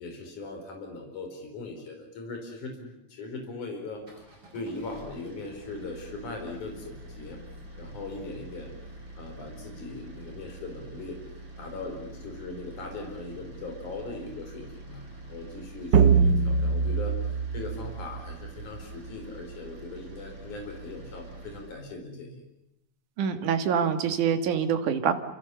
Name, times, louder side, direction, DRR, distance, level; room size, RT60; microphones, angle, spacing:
voice 1, 0.0-4.0 4.5-7.4 7.8-8.7 9.2-11.2 11.6-22.4, left 3 dB, 75° left, 3 dB, 6.0 m, -39 dB
sound 1, 3.9-21.8, right 2 dB, 40° right, 7.5 m, -46 dB
sound 2, 15.9-18.5, right 5 dB, 60° right, 1.2 m, -23 dB
voice 2, 23.2-25.1, right 7 dB, 80° right, 8 dB, 3.3 m, -25 dB
29.5 x 27.5 x 7.0 m, 0.85 s
omnidirectional pair, 3.5 m